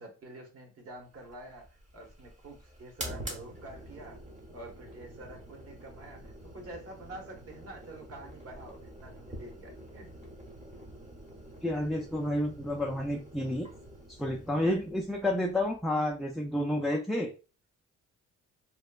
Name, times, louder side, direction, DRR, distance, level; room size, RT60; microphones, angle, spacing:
voice 1, 0.0-4.2 4.5-10.2 15.2-15.3, right 1 dB, 50° right, 1 dB, 1.2 m, -47 dB
sound 1, 1.1-16.4, right 1 dB, 25° right, 0.8 m, -47 dB
voice 2, 11.6-13.7 14.1-17.3, left 1 dB, ahead, -1 dB, 0.3 m, -30 dB
3.0 x 2.1 x 2.3 m, 0.32 s
cardioid pair, 90°, 30 cm